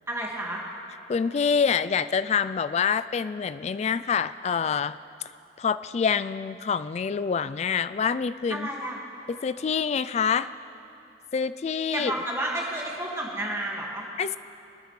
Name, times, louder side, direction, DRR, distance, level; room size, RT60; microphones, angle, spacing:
voice 1, 0.1-0.6 8.5-9.0 11.9-14.1, right 1 dB, 15° right, -3 dB, 1.8 m, -31 dB
voice 2, 1.1-5.0 5.6-8.7 9.3-10.5 11.3-12.1 14.2-14.4, left 6 dB, 40° left, 15 dB, 0.3 m, -26 dB
23.0 x 9.6 x 3.2 m, 2.9 s
head